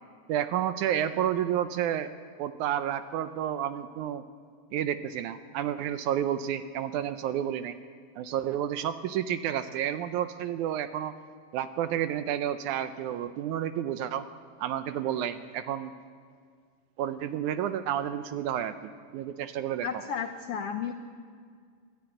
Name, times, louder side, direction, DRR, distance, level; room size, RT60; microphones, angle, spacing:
voice 1, 0.3-2.1 2.4-4.2 4.7-7.7 8.2-11.1 11.5-14.3 14.6-15.9 17.0-19.9, right 10 dB, 75° right, 11 dB, 1.9 m, -30 dB
voice 2, 19.8-20.9, left 7 dB, 85° left, 7 dB, 1.3 m, -33 dB
22.5 x 13.0 x 9.0 m, 2.1 s
omnidirectional pair, 3.9 m